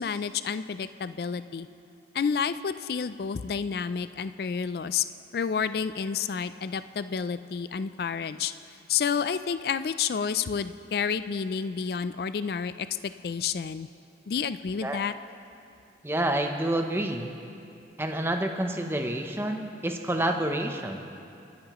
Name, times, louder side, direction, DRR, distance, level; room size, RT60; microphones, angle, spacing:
voice 1, 0.0-1.7 2.1-5.1 5.3-8.5 8.9-13.9 14.3-15.1, left 6 dB, 55° left, 13 dB, 0.3 m, -30 dB
voice 2, 16.0-17.3 18.0-21.0, right 1 dB, 15° right, 4 dB, 0.7 m, -28 dB
26.5 x 10.5 x 3.0 m, 2.6 s
head